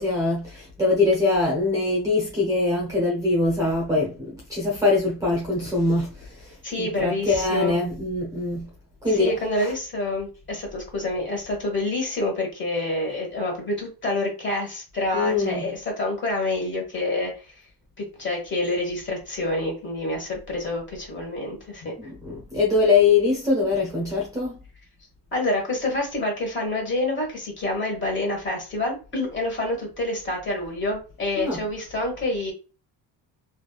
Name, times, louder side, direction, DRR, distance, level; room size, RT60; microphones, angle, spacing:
voice 1, 0.0-8.7 9.0-9.7 15.1-15.7 22.0-24.6 31.3-31.7, left 3 dB, 10° right, 0.8 m, -23 dB
voice 2, 6.6-7.7 9.2-17.3 18.0-21.9 25.3-32.5, left 2 dB, 25° left, 1.4 m, -27 dB
3.3 x 2.7 x 2.3 m
cardioid pair, 155°, 43 cm